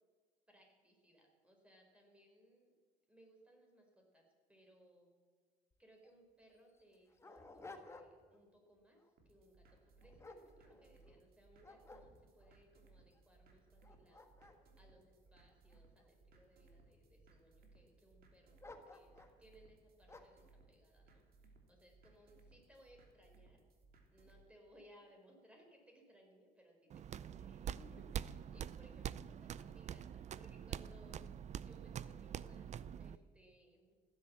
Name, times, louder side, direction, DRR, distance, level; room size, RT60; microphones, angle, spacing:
voice 1, 0.5-2.7 3.1-5.1 5.8-14.3 14.8-21.3 21.7-23.6 24.1-31.3 31.6-33.9, equal, 5° right, 1 dB, 4.6 m, -66 dB
Dog, 5.7-5.8 6.0-6.1 6.7-8.4 8.8-9.1 9.7-11.2 11.6-12.5 13.1-13.2 13.7-16.0 16.7-17.3 18.6-19.4 20.1-20.5, left 2 dB, 15° left, 1.5 m, -57 dB
sound 1, 9.2-24.4, right 3 dB, 60° right, 3.1 m, -66 dB
sound 2, 26.9-33.2, right 9 dB, 45° right, 0.5 m, -45 dB
15.5 x 10.5 x 7.7 m, 1.5 s
cardioid pair, 110°, 17 cm